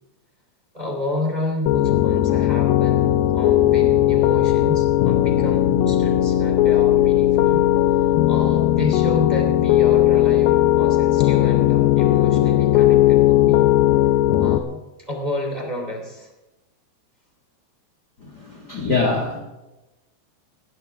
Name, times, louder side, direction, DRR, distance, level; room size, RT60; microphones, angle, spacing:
voice 1, 0.7-7.6 8.3-13.7 14.4-14.8 15.1-16.3, left 1 dB, 10° right, 0 dB, 2.5 m, -30 dB
Piano, 1.7-14.6, left 13 dB, 80° left, 2.2 m, -17 dB
voice 2, 18.2-19.4, left 3 dB, 45° left, 0 dB, 1.3 m, -24 dB
20.5 x 17.0 x 3.6 m, 1.0 s
omnidirectional pair, 5.0 m